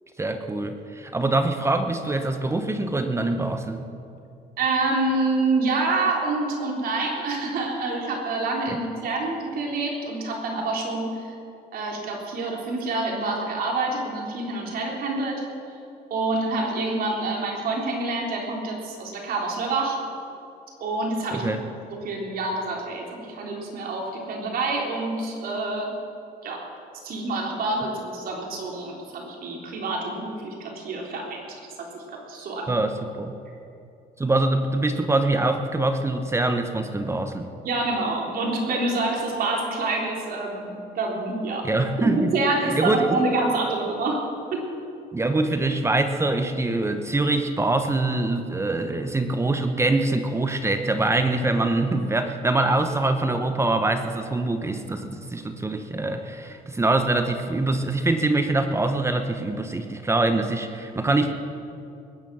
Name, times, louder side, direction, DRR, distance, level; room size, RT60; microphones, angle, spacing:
voice 1, 0.2-3.9 8.7-8.8 21.3-21.6 32.7-33.3 34.2-37.5 41.6-42.3 42.6-43.2 45.1-61.3, right 2 dB, 15° right, 7 dB, 1.0 m, -24 dB
voice 2, 4.6-11.3 11.7-15.4 16.1-20.0 20.8-21.5 22.0-25.9 26.4-26.6 27.0-32.7 37.6-41.7 42.0-44.2 44.5-44.6, right 2 dB, 60° right, -1 dB, 3.7 m, -27 dB
21.5 x 9.9 x 6.2 m, 2.6 s
cardioid pair, 110°, 17 cm